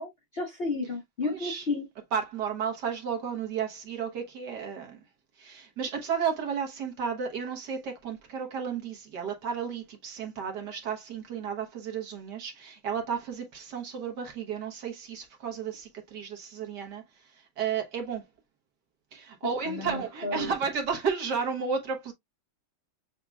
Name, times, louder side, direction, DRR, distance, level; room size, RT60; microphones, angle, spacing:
voice 1, 0.0-1.8 19.4-20.5, left 3 dB, 40° left, 1.0 m, -33 dB
voice 2, 1.2-1.6 2.1-5.0 5.4-18.2 19.1-22.1, right 6 dB, 60° right, 1.5 m, -33 dB
7.0 x 2.9 x 2.3 m
omnidirectional pair, 2.2 m